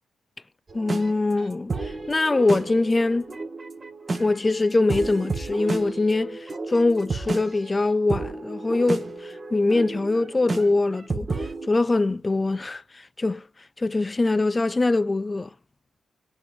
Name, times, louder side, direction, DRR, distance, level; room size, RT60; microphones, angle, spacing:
voice 1, 0.7-3.3 4.2-13.5 13.8-15.5, left 2 dB, 30° left, 0.4 m, -23 dB
sound 1, 0.7-11.7, right 3 dB, 40° right, 1.2 m, -32 dB
8.5 x 3.1 x 5.1 m
supercardioid pair, 50°, 0 cm